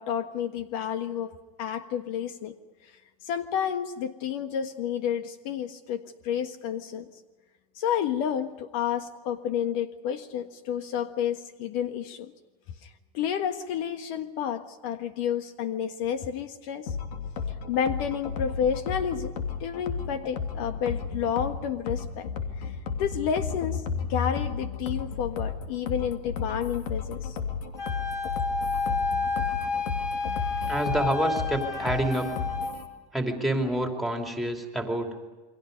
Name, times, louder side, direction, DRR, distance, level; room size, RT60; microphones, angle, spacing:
voice 1, 0.0-1.3 1.6-2.5 3.2-7.0 7.7-12.3 12.8-12.9 13.1-16.9 17.7-19.3 19.6-22.3 22.6-22.7 23.0-23.8 24.1-27.4, left 8 dB, 60° left, 9 dB, 1.6 m, -30 dB
sound 1, 16.9-32.9, left 5 dB, 75° left, 3.2 m, -33 dB
Wind instrument woodwind instrument, 27.8-32.7, left 4 dB, 15° left, 4.3 m, -30 dB
voice 2, 30.7-32.3 33.1-35.3, right 1 dB, ahead, 3 dB, 2.9 m, -28 dB
29.5 x 23.5 x 5.3 m, 1.2 s
supercardioid pair, 155°, 20 cm